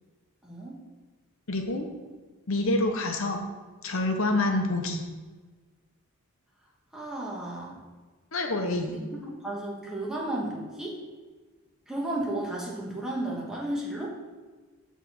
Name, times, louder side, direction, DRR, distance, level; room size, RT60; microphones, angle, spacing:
voice 1, 0.4-0.8 6.9-7.8 8.9-11.0 11.9-14.1, right 1 dB, 5° right, -5 dB, 1.4 m, -33 dB
voice 2, 1.5-1.9 2.5-3.5 3.8-5.0 8.3-8.9, left 2 dB, 65° left, 4 dB, 1.0 m, -27 dB
6.1 x 4.1 x 6.3 m, 1.3 s
head